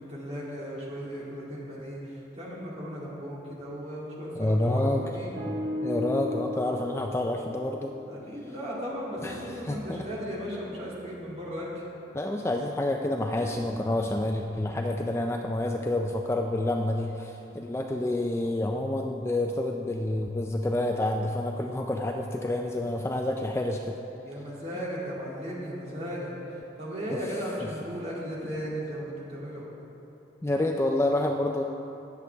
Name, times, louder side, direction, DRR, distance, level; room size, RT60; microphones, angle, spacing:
voice 1, 0.0-5.4 8.1-11.9 24.2-29.7, equal, 35° right, -6 dB, 2.3 m, -36 dB
voice 2, 4.4-5.0 5.8-7.9 9.2-9.3 9.7-10.0 12.1-23.9 30.4-31.6, left 1 dB, 15° left, 2 dB, 0.3 m, -28 dB
sound 1, 5.3-8.7 9.1-12.8 13.5-17.7 18.4-18.5, left 2 dB, 65° right, 1.3 m, -40 dB
18.5 x 7.1 x 3.4 m, 2.9 s
head